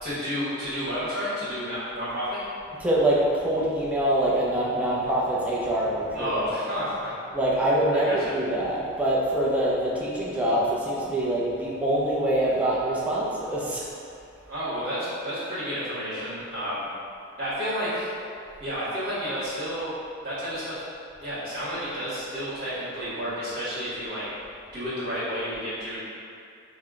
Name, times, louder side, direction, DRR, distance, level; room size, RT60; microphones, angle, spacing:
voice 1, 0.0-2.4 6.1-7.1 7.9-8.3 14.5-16.9 17.4-18.1 18.6-19.9 20.2-20.8 21.2-24.2 24.7-26.0, equal, 55° right, -12 dB, 1.5 m, -31 dB
voice 2, 2.8-6.3 7.3-13.9, right 1 dB, 5° right, -6 dB, 0.6 m, -24 dB
5.5 x 2.2 x 3.6 m, 2.5 s
head